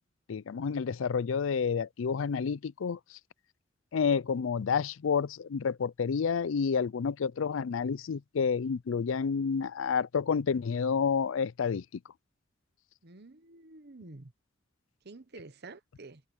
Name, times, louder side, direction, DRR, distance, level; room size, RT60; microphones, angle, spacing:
voice 1, 0.3-3.2 3.9-11.8, left 6 dB, 80° left, 0.4 m, -29 dB
voice 2, 13.0-14.3 15.0-16.2, right 3 dB, 55° right, 1.2 m, -49 dB
head